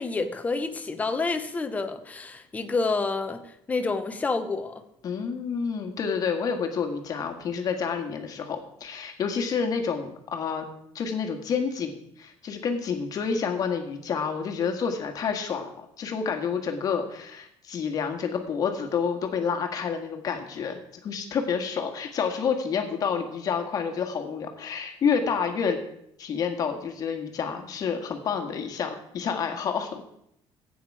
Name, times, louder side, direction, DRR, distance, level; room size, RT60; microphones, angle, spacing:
voice 1, 0.0-4.8, left 3 dB, 15° left, 7 dB, 0.9 m, -29 dB
voice 2, 5.0-10.6 10.9-25.8 26.2-30.0, left 6 dB, 40° left, 4 dB, 1.7 m, -29 dB
15.5 x 8.7 x 4.8 m, 0.75 s
cardioid pair, 170°, 10 cm